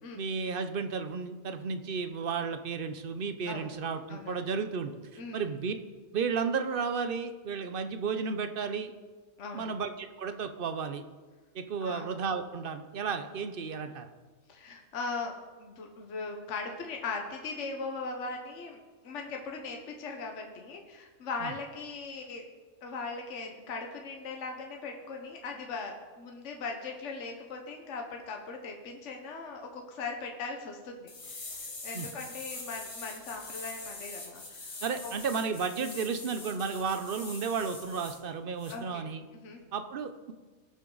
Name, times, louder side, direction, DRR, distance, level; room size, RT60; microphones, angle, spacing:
voice 1, 0.2-4.9 5.3-5.7 6.1-8.9 9.5-11.0 11.5-14.1 21.4-21.5 31.9-32.1 34.8-39.2 39.7-40.3, right 5 dB, 55° right, 9 dB, 0.6 m, -33 dB
voice 2, 4.1-4.4 5.2-5.5 9.4-9.7 11.8-12.1 14.5-18.8 19.0-22.4 22.8-34.8 35.0-35.1 35.8-35.9 38.7-39.0 39.3-39.6, left 4 dB, 55° left, 2 dB, 1.4 m, -39 dB
sound 1, 31.1-38.2 38.6-38.8, left 3 dB, 70° left, 2.1 m, -43 dB
19.0 x 6.5 x 3.9 m, 1.3 s
omnidirectional pair, 1.6 m